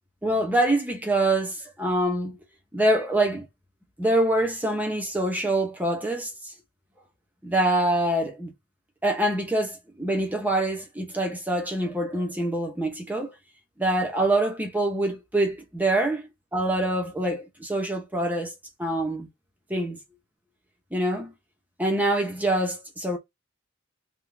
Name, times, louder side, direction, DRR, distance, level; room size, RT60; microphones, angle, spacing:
voice 1, 0.2-2.4 2.7-3.5 4.0-6.5 7.4-8.5 9.0-13.3 13.8-18.5 18.8-19.3 19.7-20.0 20.9-21.3 21.8-23.2, right 1 dB, 10° right, 0.8 m, -25 dB
3.6 x 2.4 x 3.3 m
head